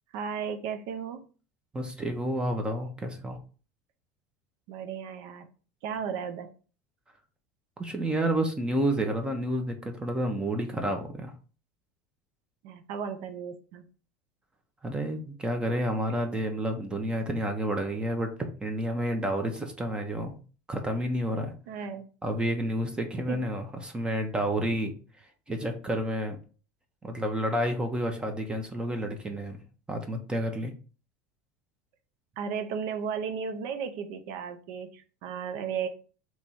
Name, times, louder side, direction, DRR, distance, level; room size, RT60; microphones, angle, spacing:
voice 1, 0.1-1.2 4.7-5.4 5.8-6.5 12.6-13.8 21.7-22.1 23.3-23.4 32.4-35.9, right 6 dB, 70° right, 0.6 m, -34 dB
voice 2, 1.7-3.4 7.8-11.3 14.8-20.4 20.7-21.5 22.2-24.9 25.5-26.4 27.0-29.6 29.9-30.7, right 1 dB, 15° right, 0.7 m, -30 dB
3.4 x 3.0 x 4.2 m
supercardioid pair, 135°, 7 cm